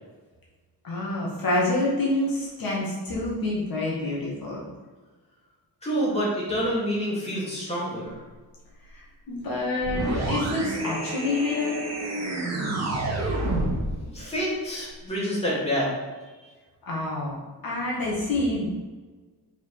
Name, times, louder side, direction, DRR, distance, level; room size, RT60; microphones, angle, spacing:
voice 1, 0.8-4.6 8.9-11.8 16.9-17.4 17.6-18.6, left 2 dB, 65° left, -4 dB, 2.1 m, -27 dB
voice 2, 5.8-8.1 13.9-15.9, equal, 15° left, -7 dB, 2.5 m, -27 dB
sound 1, 9.8-14.0, right 2 dB, 45° right, 1.5 m, -28 dB
6.6 x 5.1 x 4.9 m, 1.3 s
wide cardioid pair, 170°, 38 cm